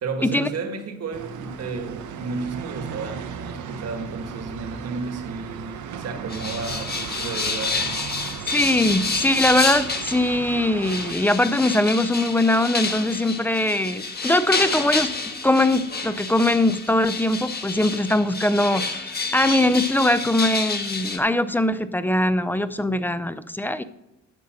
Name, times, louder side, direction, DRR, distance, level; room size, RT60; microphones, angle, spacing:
voice 1, 0.0-7.9, right 4 dB, 55° right, 1.6 m, -32 dB
sound 1, 1.1-11.1, right 7 dB, 75° right, 1.0 m, -36 dB
sound 2, 6.3-10.3 10.8-21.2, left 4 dB, 30° left, 1.4 m, -29 dB
voice 2, 8.5-15.1 15.4-23.8, left 1 dB, 5° left, 0.5 m, -21 dB
9.7 x 5.7 x 6.4 m
cardioid pair, 90°, 30 cm